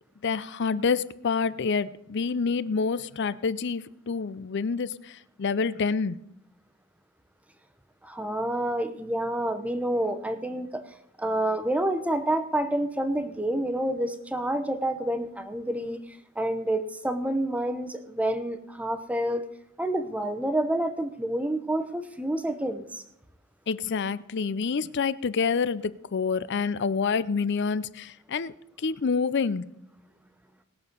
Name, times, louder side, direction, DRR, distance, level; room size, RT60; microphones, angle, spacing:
voice 1, 0.2-6.2 23.7-29.7, left 5 dB, 55° left, 0.5 m, -27 dB
voice 2, 8.0-10.8 11.2-16.0 16.4-19.4 19.8-23.0, right 1 dB, 5° right, 0.8 m, -28 dB
19.5 x 6.7 x 5.3 m
head